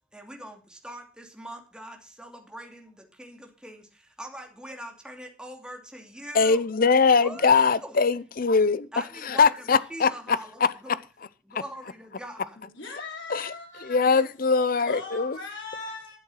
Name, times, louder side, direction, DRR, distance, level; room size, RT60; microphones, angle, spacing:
voice 1, 0.1-6.7 7.2-7.9 8.9-11.0 11.4-12.6, right 1 dB, 5° right, 2.6 m, -42 dB
voice 2, 6.3-8.9 9.2-10.7 13.3-13.5 13.8-15.4, left 5 dB, 50° left, 0.6 m, -22 dB
voice 3, 12.6-14.2 14.7-16.2, left 3 dB, 80° left, 5.0 m, -40 dB
12.5 x 7.8 x 5.6 m
head